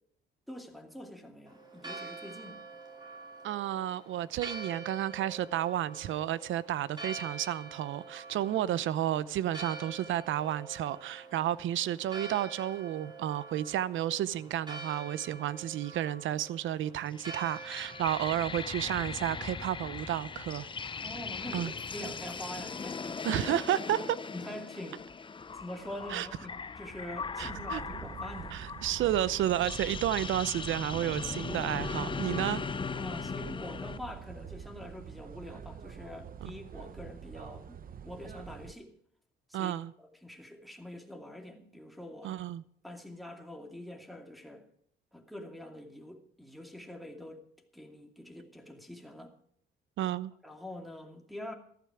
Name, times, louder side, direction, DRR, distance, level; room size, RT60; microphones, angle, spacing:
voice 1, 0.5-2.6 8.6-8.7 21.0-23.3 24.3-25.0 25.5-28.6 33.0-38.9 39.5-39.7 40.0-42.4 42.8-44.6 45.1-47.4 47.7-49.4 50.4-51.5, left 1 dB, ahead, 2.5 m, -45 dB
Church bell, 1.5-20.9, right 3 dB, 20° right, 4.4 m, -47 dB
voice 2, 3.4-20.7 21.5-21.7 23.2-24.2 26.1-26.3 27.4-27.8 28.5-32.6 36.4-36.5 39.5-39.9 42.2-42.6 50.0-50.3, right 12 dB, 75° right, 0.7 m, -32 dB
sound 1, 17.1-34.0, left 5 dB, 25° left, 0.6 m, -39 dB
sound 2, 27.4-38.7, right 8 dB, 45° right, 0.8 m, -45 dB
14.5 x 13.0 x 4.8 m
cardioid pair, 90°, 20 cm